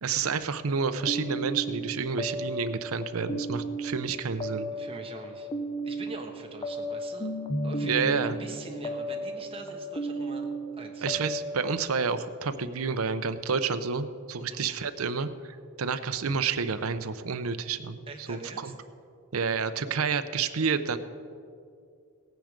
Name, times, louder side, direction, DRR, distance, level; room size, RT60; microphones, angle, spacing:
voice 1, 0.0-4.7 7.8-8.4 11.0-15.3 15.8-18.7 19.3-21.0, right 5 dB, 80° right, 11 dB, 0.7 m, -29 dB
sound 1, 1.0-11.8, right 1 dB, 25° left, 0.8 m, -34 dB
voice 2, 4.7-5.5 5.8-7.3 7.6-10.5 10.8-11.1 14.4-14.6 18.1-18.7, right 2 dB, 25° right, 2 dB, 1.4 m, -43 dB
17.5 x 9.3 x 5.2 m, 2.4 s
head